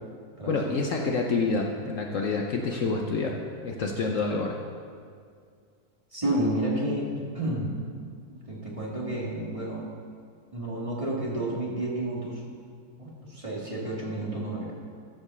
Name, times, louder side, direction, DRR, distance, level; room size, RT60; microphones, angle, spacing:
voice 1, 0.5-4.6, left 3 dB, 60° left, 1 dB, 1.0 m, -28 dB
voice 2, 6.1-7.7 8.3-9.9 10.5-12.4 13.0-14.7, right 1 dB, 20° right, -4 dB, 1.9 m, -30 dB
14.5 x 5.2 x 6.8 m, 2.2 s
omnidirectional pair, 1.7 m